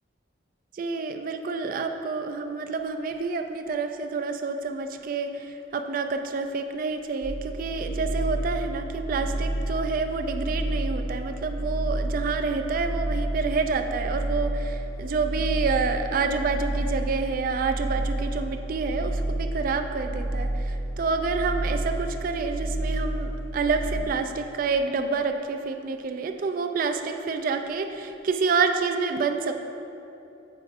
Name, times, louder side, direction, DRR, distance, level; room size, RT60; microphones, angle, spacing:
voice 1, 0.7-29.6, right 4 dB, 50° right, 6 dB, 0.3 m, -28 dB
sound 1, 7.2-24.0, right 1 dB, 35° left, 0.8 m, -30 dB
7.8 x 5.0 x 2.5 m, 2.8 s
head